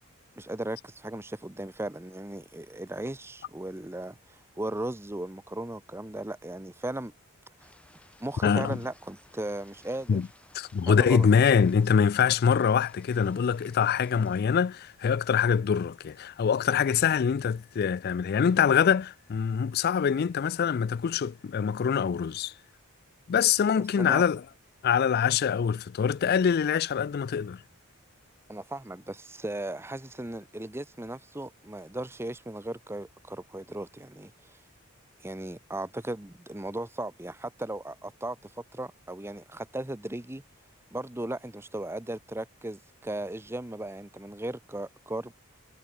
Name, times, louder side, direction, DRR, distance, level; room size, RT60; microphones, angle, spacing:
voice 1, 0.4-7.1 8.2-10.2 10.9-11.3 23.8-24.3 28.5-34.5 35.2-40.4 40.9-45.3, right 1 dB, 10° right, 0.8 m, -37 dB
sound 1, 7.6-14.4, left 1 dB, 5° left, 3.8 m, -58 dB
voice 2, 8.4-8.8 10.1-10.3 10.5-22.5 23.3-24.4 24.8-27.6, left 7 dB, 45° left, 0.3 m, -24 dB
head